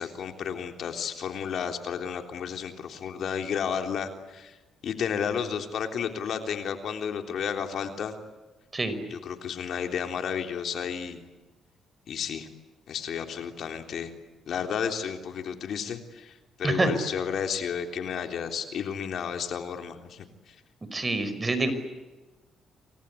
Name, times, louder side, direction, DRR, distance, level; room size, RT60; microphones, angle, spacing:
voice 1, 0.0-4.6 4.8-8.2 9.1-11.2 12.1-12.5 12.9-14.1 14.5-20.6, left 7 dB, 65° left, 5 dB, 3.4 m, -32 dB
voice 2, 20.9-21.7, right 2 dB, 25° right, 11 dB, 5.2 m, -26 dB
28.5 x 24.5 x 8.5 m, 1.2 s
cardioid pair, 90°, 0 cm